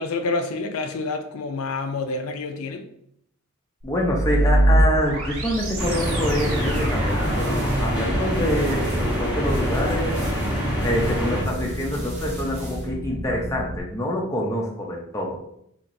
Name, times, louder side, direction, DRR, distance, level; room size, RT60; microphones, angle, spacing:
voice 1, 0.0-2.9, left 3 dB, 70° left, 0.4 m, -28 dB
voice 2, 3.8-10.2 10.8-15.4, equal, 15° left, 0.5 m, -26 dB
sound 1, 3.8-13.8, right 1 dB, 60° right, 0.7 m, -27 dB
sound 2, 5.5-12.9, equal, 30° right, 1.0 m, -39 dB
sound 3, 5.8-11.4, equal, 5° right, 1.1 m, -25 dB
4.5 x 2.9 x 2.6 m
head